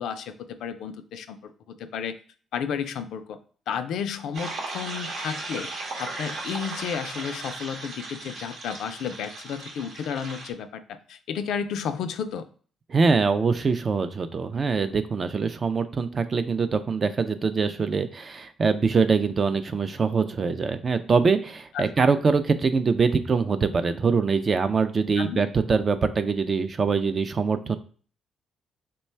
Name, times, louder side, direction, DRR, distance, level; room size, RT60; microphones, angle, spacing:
voice 1, 0.0-2.2 2.5-3.4 3.7-5.7 6.0-12.5 21.7-21.9 25.2-25.4, left 7 dB, 80° left, 9 dB, 0.4 m, -32 dB
sound 1, 4.3-10.5, right 2 dB, 80° right, 0.9 m, -36 dB
voice 2, 12.9-27.8, right 5 dB, 40° right, 10 dB, 0.4 m, -23 dB
3.2 x 2.2 x 4.3 m, 0.42 s
cardioid pair, 90°, 0 cm